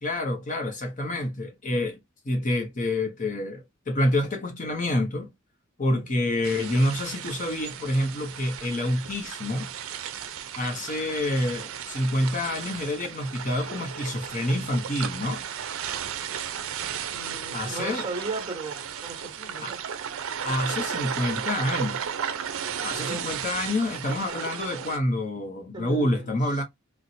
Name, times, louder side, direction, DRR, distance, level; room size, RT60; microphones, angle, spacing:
voice 1, 0.0-2.0 2.2-5.3 5.8-9.7 10.6-15.4 17.5-18.1 19.6-19.7 20.4-22.0 22.8-26.6, left 1 dB, 35° left, 0.7 m, -27 dB
sound 1, 6.4-25.0, right 8 dB, 70° right, 0.5 m, -34 dB
voice 2, 17.1-19.8 23.1-23.2 25.7-26.6, right 3 dB, 20° right, 1.2 m, -37 dB
4.0 x 2.1 x 2.6 m
head